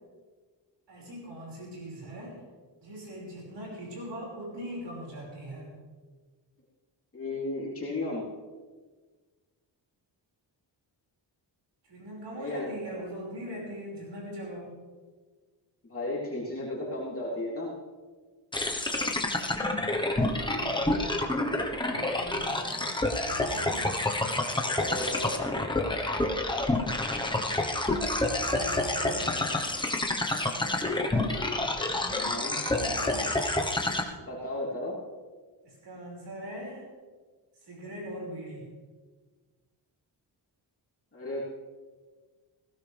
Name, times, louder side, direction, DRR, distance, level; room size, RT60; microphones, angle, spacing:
voice 1, 0.9-2.4 2.8-5.7 11.8-14.7 20.3-21.3 21.8-24.0 28.2-29.5 30.4-30.9 31.7-33.3 35.6-36.9 37.6-38.7, equal, 65° right, -4 dB, 5.6 m, -41 dB
voice 2, 7.1-8.3 12.3-12.7 15.8-17.7 24.6-25.3 32.1-32.6 34.2-35.0 41.1-41.4, left 2 dB, 30° left, -6 dB, 3.3 m, -34 dB
sound 1, 18.5-34.0, left 2 dB, 10° left, 1.1 m, -28 dB
19.5 x 16.5 x 3.4 m, 1.4 s
wide cardioid pair, 175°, 44 cm